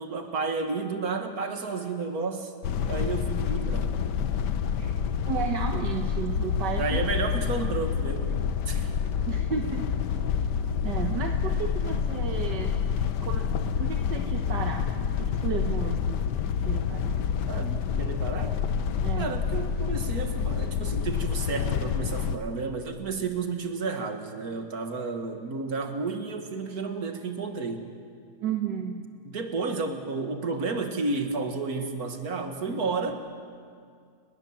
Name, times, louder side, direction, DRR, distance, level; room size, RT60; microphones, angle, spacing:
voice 1, 0.0-2.5 2.8-3.9 6.8-8.4 8.7-8.9 17.5-18.6 19.2-27.9 29.2-33.2, right 4 dB, 55° right, 5 dB, 2.4 m, -31 dB
sound 1, 2.6-22.4, left 7 dB, 75° left, 1.5 m, -28 dB
voice 2, 5.3-7.0 9.3-9.9 10.8-12.7 13.2-14.9 15.2-16.4 16.7-17.1 19.0-19.4 28.4-29.1, right 6 dB, 75° right, 4 dB, 1.8 m, -33 dB
30.0 x 20.5 x 7.6 m, 2.1 s
omnidirectional pair, 1.9 m